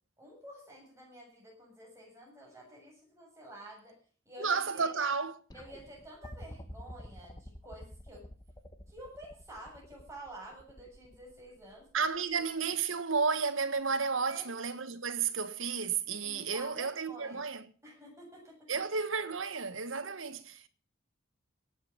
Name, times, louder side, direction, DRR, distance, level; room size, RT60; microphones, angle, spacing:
voice 1, 0.2-4.0 4.3-4.9 5.5-8.3 8.9-11.9 14.3-14.5 16.2-17.4 17.8-18.7, right 1 dB, 15° right, 7.5 m, -50 dB
voice 2, 4.4-5.4 11.9-17.7 18.7-20.7, right 5 dB, 85° right, 1.5 m, -32 dB
sound 1, 5.5-12.7 13.8-13.9, equal, 20° left, 1.5 m, -49 dB
18.0 x 8.6 x 7.3 m
head